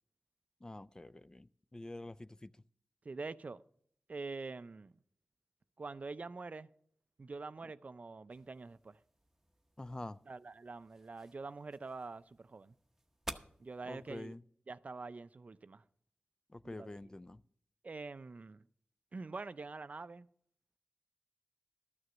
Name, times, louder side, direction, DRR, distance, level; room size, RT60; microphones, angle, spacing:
voice 1, 0.6-2.5 9.8-10.2 13.9-14.4 16.5-17.4, left 2 dB, 20° left, 0.3 m, -47 dB
voice 2, 3.0-3.6 4.1-4.9 5.8-6.7 7.2-9.0 10.3-12.8 13.6-14.3 14.7-15.8 16.6-16.9 17.8-18.7 19.1-20.3, right 3 dB, 45° right, 0.4 m, -45 dB
sound 1, 8.3-14.2, right 1 dB, 10° right, 0.9 m, -53 dB
12.5 x 6.5 x 6.1 m
cardioid pair, 60°, 3 cm